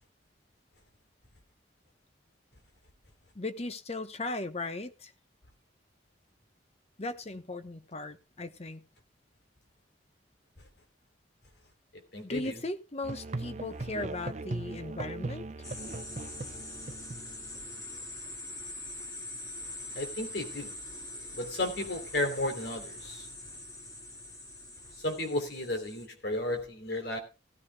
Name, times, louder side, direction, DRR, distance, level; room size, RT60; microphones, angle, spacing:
voice 1, 3.3-5.1 7.0-8.8 12.2-15.4, left 2 dB, 35° left, 1.0 m, -37 dB
voice 2, 12.1-12.6 19.9-20.7 21.4-23.3 25.0-27.2, left 1 dB, 60° left, 3.2 m, -33 dB
Musical instrument, 13.0-17.8, right 2 dB, 40° right, 0.6 m, -39 dB
sound 1, 15.6-26.1, left 2 dB, 20° left, 2.0 m, -43 dB
16.5 x 13.5 x 2.3 m
head